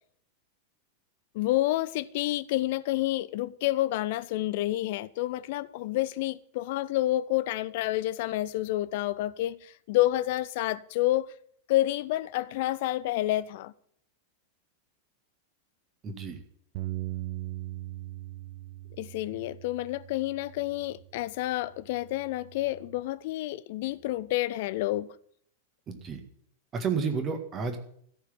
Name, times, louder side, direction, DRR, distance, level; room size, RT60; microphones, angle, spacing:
voice 1, 1.3-11.3 11.7-13.7 19.0-25.1, left 16 dB, 50° left, 0.5 m, -29 dB
voice 2, 16.0-16.4 25.9-26.2 26.7-27.8, right 5 dB, 25° right, 1.8 m, -31 dB
Bass guitar, 16.7-21.2 21.8-23.0, right 17 dB, 45° right, 0.5 m, -40 dB
14.0 x 4.9 x 9.0 m
figure-of-eight pair, 90°, 0 cm